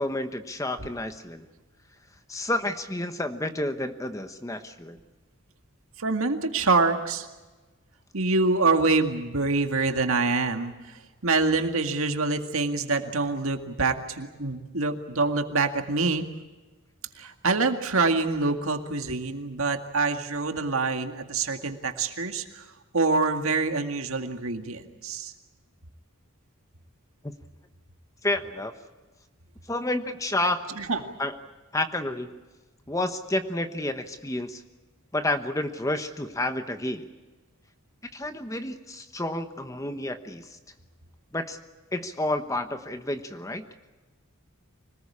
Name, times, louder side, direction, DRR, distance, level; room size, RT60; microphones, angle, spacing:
voice 1, 0.0-1.5 2.3-5.0 28.2-28.7 29.7-30.8 31.2-31.4 31.7-32.4 32.9-34.6 35.1-37.1 38.1-40.6 41.3-41.6 41.9-43.7, left 1 dB, 15° left, 8 dB, 1.0 m, -30 dB
voice 2, 6.0-7.3 8.1-10.7 11.2-16.2 17.2-22.6 22.9-25.3 30.8-31.0, right 3 dB, 70° right, 6 dB, 2.0 m, -25 dB
25.5 x 19.5 x 8.6 m, 1.2 s
head